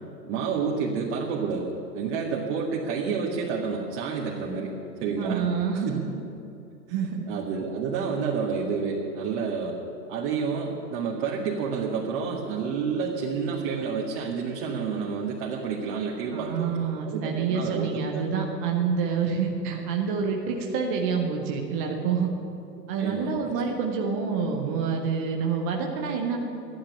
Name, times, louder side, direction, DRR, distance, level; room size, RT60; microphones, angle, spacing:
voice 1, 0.2-4.7 5.0-6.0 6.9-7.0 7.3-9.7 10.1-18.2 23.0-23.5, right 5 dB, 45° right, -4 dB, 2.2 m, -29 dB
voice 2, 5.2-6.0 6.9-7.2 16.3-22.3 22.9-26.4, right 6 dB, 10° right, 1 dB, 0.4 m, -27 dB
12.5 x 10.5 x 9.8 m, 2.7 s
hypercardioid pair, 120°, 50 cm